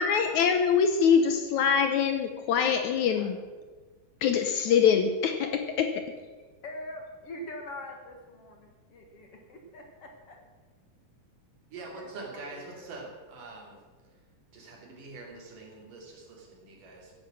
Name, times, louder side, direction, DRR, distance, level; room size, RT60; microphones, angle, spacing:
voice 1, 0.0-3.4 4.2-6.1, left 7 dB, 70° left, 7 dB, 2.0 m, -24 dB
voice 2, 6.6-10.4 11.9-12.9, left 1 dB, 50° left, 3 dB, 2.3 m, -44 dB
voice 3, 11.7-13.8 14.5-17.1, right 3 dB, 70° right, 0 dB, 4.5 m, -44 dB
15.5 x 10.5 x 6.3 m, 1.3 s
omnidirectional pair, 3.9 m